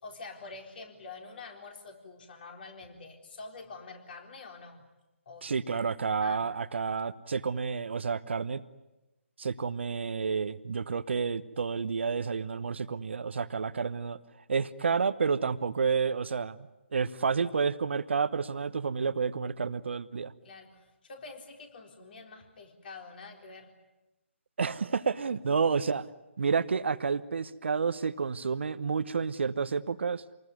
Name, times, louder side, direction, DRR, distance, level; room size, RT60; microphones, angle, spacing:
voice 1, 0.0-4.8 5.3-5.5 6.2-6.4 20.4-23.7, left 3 dB, 45° left, 3 dB, 4.1 m, -46 dB
voice 2, 5.4-8.6 9.4-14.2 14.5-20.3 24.6-26.1 26.4-30.2, right 5 dB, 60° right, 13 dB, 1.0 m, -30 dB
26.5 x 20.5 x 9.6 m, 1.0 s
figure-of-eight pair, 150°, 7 cm